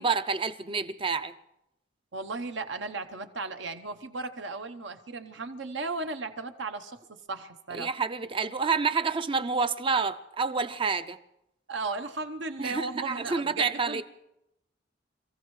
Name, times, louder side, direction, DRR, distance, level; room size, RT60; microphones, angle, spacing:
voice 1, 0.0-1.3 7.7-11.2 12.6-14.0, right 5 dB, 25° right, 11 dB, 0.5 m, -28 dB
voice 2, 2.1-7.9 11.7-14.0, right 3 dB, 70° right, 8 dB, 1.0 m, -36 dB
27.5 x 15.0 x 3.2 m, 0.86 s
head